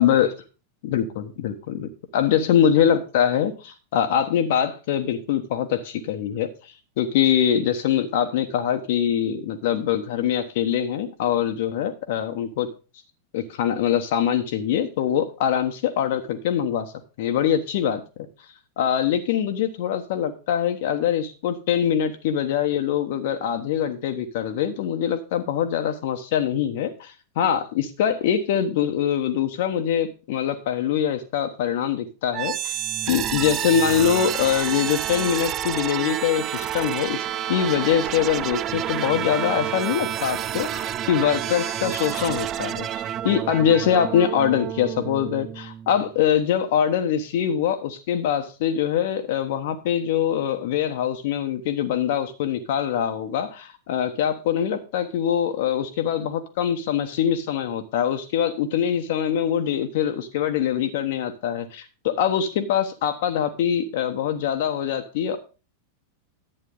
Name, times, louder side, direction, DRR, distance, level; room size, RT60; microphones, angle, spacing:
voice 1, 0.0-0.3 0.8-12.7 13.3-16.9 17.2-18.0 18.8-32.7 33.1-65.4, left 9 dB, 50° left, 7 dB, 1.1 m, -23 dB
sound 1, 32.3-46.2, right 10 dB, 30° right, 0.5 m, -29 dB
11.0 x 8.7 x 3.8 m, 0.34 s
figure-of-eight pair, 90°, 0 cm